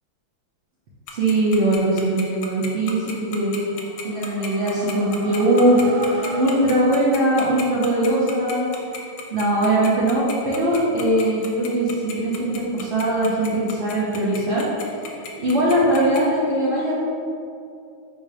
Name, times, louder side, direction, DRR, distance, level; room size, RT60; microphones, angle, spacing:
Tick-tock, 1.1-16.2, left 7 dB, 75° left, 1.1 m, -34 dB
voice 1, 1.1-3.6 4.0-5.9 6.3-8.7 9.3-14.7 15.4-16.9, right 1 dB, 65° right, -8 dB, 0.6 m, -20 dB
sound 1, 3.7-7.5, right 2 dB, 40° right, 0.9 m, -37 dB
3.8 x 2.7 x 4.7 m, 2.6 s
omnidirectional pair, 2.1 m